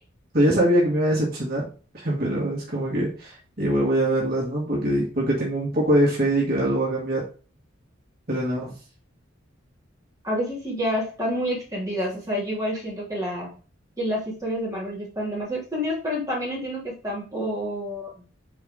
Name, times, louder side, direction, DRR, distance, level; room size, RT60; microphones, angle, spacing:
voice 1, 0.3-1.6 1.9-7.2 8.3-8.7, right 1 dB, 50° right, -5 dB, 2.2 m, -23 dB
voice 2, 10.2-13.5 14.0-18.1, equal, 15° right, -6 dB, 2.9 m, -28 dB
5.1 x 4.7 x 5.0 m, 0.37 s
head